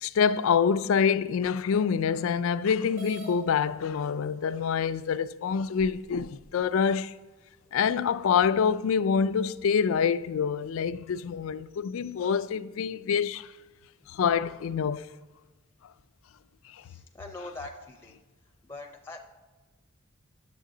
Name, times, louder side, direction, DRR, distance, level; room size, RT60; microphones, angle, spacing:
voice 1, 0.0-7.1 7.7-13.5 14.1-15.1, left 6 dB, 80° left, 0.3 m, -26 dB
sound 1, 2.9-3.3 4.3-4.4 5.0-5.1 5.8-6.5, right 1 dB, 70° right, 2.4 m, -45 dB
voice 2, 16.8-18.2 18.6-19.2, left 2 dB, 10° left, 0.6 m, -43 dB
9.2 x 7.3 x 3.8 m
head